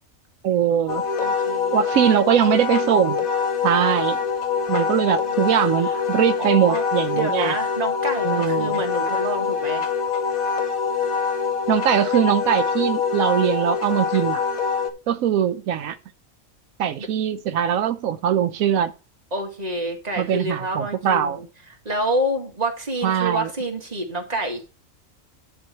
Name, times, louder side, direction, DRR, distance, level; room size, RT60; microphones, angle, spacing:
voice 1, 0.4-1.0 1.7-3.2 3.6-4.2 4.7-7.5 8.2-8.8 11.7-14.4 15.1-16.0 16.8-18.9 20.2-21.4 23.0-23.5, right 9 dB, 85° right, 1.1 m, -21 dB
Wind instrument woodwind instrument, 0.9-14.9, left 6 dB, 90° left, 1.7 m, -24 dB
voice 2, 1.2-1.7 4.8-5.5 5.8-6.0 6.4-6.8 7.1-9.9 17.0-17.1 19.3-21.5 21.9-24.6, right 1 dB, 30° right, 2.1 m, -28 dB
10.5 x 4.8 x 5.5 m
omnidirectional pair, 1.4 m